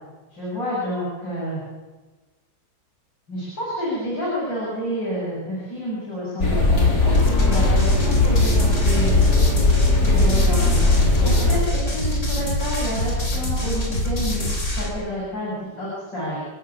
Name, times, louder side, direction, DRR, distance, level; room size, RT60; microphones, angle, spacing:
voice 1, 0.3-1.6 3.3-9.2 10.0-10.8 11.2-16.4, equal, 80° left, -7 dB, 8.7 m, -29 dB
sound 1, 6.4-11.6, left 2 dB, 60° left, 4.3 m, -18 dB
sound 2, 7.1-14.9, left 1 dB, 40° left, 3.9 m, -25 dB
30.0 x 11.0 x 8.8 m, 1.2 s
omnidirectional pair, 1.9 m